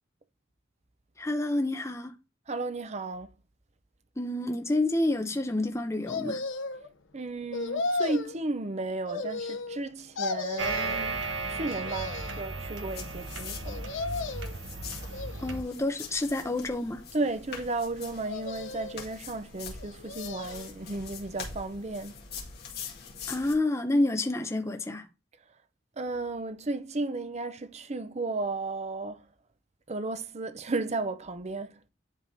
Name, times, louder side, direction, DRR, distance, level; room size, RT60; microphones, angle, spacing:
voice 1, 1.2-2.1 4.2-6.4 15.4-17.0 23.3-25.1, left 2 dB, 15° left, 0.7 m, -28 dB
voice 2, 2.5-3.4 7.1-11.2 11.5-14.0 17.1-22.3 26.0-29.3 29.9-31.8, right 2 dB, 35° right, 0.6 m, -34 dB
sound 1, 6.1-6.9 7.5-8.3 9.1-9.9 10.2-11.0 11.6-12.5 13.6-14.6 15.1-15.8 16.4-17.2 18.2-19.1 19.8-20.7 21.1-21.2, left 3 dB, 70° left, 0.8 m, -35 dB
sound 2, 10.6-15.6, right 3 dB, 65° right, 1.1 m, -35 dB
sound 3, 12.9-23.5, left 6 dB, 50° left, 2.1 m, -44 dB
11.0 x 3.6 x 2.7 m
head